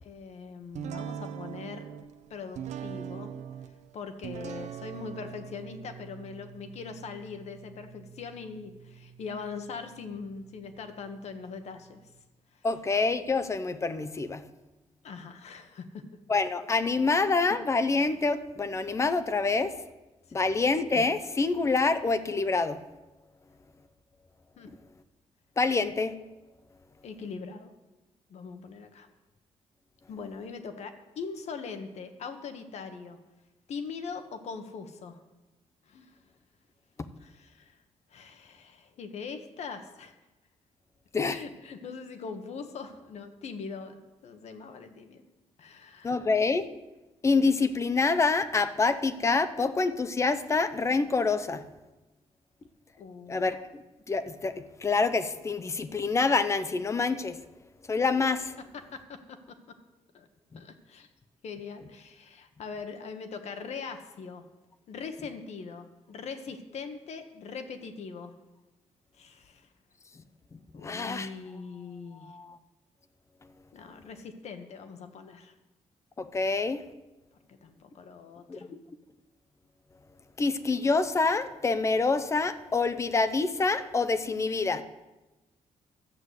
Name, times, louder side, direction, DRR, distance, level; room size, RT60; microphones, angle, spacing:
voice 1, 0.0-1.8 2.3-3.4 3.9-12.0 15.0-16.0 20.3-20.4 24.6-24.7 27.0-27.7 28.3-29.1 30.1-33.2 33.7-35.2 35.9-36.2 37.2-37.8 38.1-40.1 41.2-45.2 45.6-46.2 53.0-53.4 58.7-59.4 60.1-60.3 60.5-61.1 61.4-64.4 64.9-68.3 69.2-69.7 70.7-72.3 73.7-75.5 77.5-78.7, left 5 dB, 60° left, 7 dB, 1.3 m, -41 dB
sound 1, 0.7-12.2, right 8 dB, 65° right, 0.7 m, -43 dB
voice 2, 12.6-14.4 16.3-19.7 20.3-22.8 25.6-26.1 41.1-41.4 46.0-46.7 47.2-51.6 53.3-53.8 54.1-57.4 57.9-58.5 60.5-60.6 70.8-71.3 72.2-72.6 76.2-76.8 78.5-78.8 80.4-84.8, left 4 dB, 25° left, 11 dB, 0.6 m, -26 dB
12.0 x 8.0 x 8.2 m, 1.1 s
wide cardioid pair, 170°, 13 cm